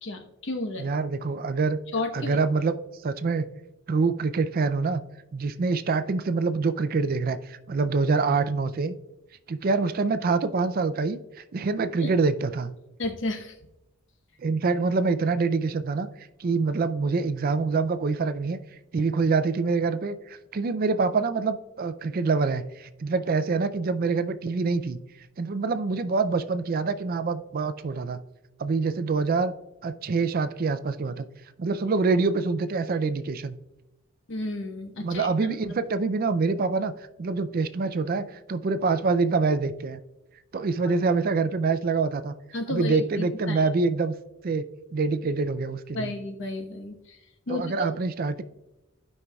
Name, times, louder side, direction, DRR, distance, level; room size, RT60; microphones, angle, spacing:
voice 1, 0.0-0.9 1.9-2.4 12.0-12.1 13.0-13.5 34.3-35.5 40.8-40.9 42.5-43.6 45.9-47.2 47.5-47.9, left 2 dB, 60° left, 4 dB, 1.0 m, -32 dB
voice 2, 0.8-1.8 2.1-2.8 3.0-3.5 3.9-5.0 5.3-8.9 9.5-11.2 11.5-12.7 14.4-18.6 18.9-25.0 25.4-28.2 28.6-29.5 29.8-31.3 31.6-33.6 35.0-36.9 37.2-40.0 40.5-42.3 42.7-44.1 44.4-44.6 44.9-46.1 47.5-48.4, right 4 dB, 45° right, 12 dB, 0.4 m, -25 dB
15.5 x 5.4 x 2.3 m, 0.98 s
head